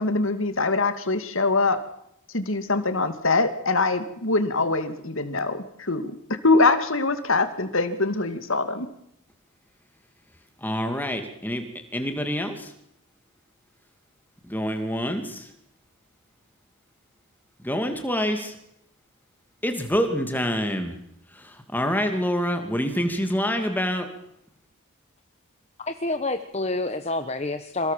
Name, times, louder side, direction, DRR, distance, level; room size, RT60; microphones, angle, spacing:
voice 1, 0.0-1.8 2.3-6.2 6.4-8.9, left 3 dB, 65° left, 9 dB, 2.5 m, -23 dB
voice 2, 10.6-11.6 11.9-12.5 14.5-15.4 17.6-18.5 19.6-20.9 21.7-24.1, equal, 10° left, 6 dB, 2.4 m, -26 dB
voice 3, 25.9-27.9, left 2 dB, 30° left, 8 dB, 1.2 m, -28 dB
27.5 x 18.0 x 7.5 m, 0.77 s
head